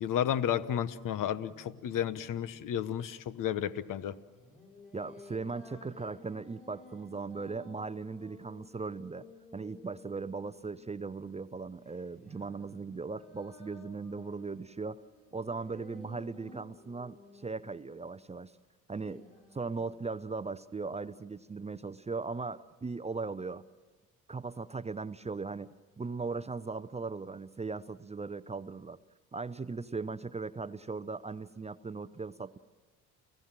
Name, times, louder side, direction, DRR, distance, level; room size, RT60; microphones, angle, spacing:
voice 1, 0.0-4.2, left 10 dB, 55° left, 15 dB, 1.1 m, -32 dB
sound 1, 1.1-3.2 4.4-11.1 11.9-18.3 19.0-19.9, left 2 dB, 20° left, 6.3 m, -55 dB
voice 2, 4.9-9.3 9.5-15.0 15.3-18.5 18.9-19.3 19.5-23.6 24.3-29.0 29.3-32.6, right 4 dB, 20° right, 14 dB, 0.6 m, -38 dB
29.0 x 15.5 x 7.5 m, 1.3 s
supercardioid pair, 70°, 37 cm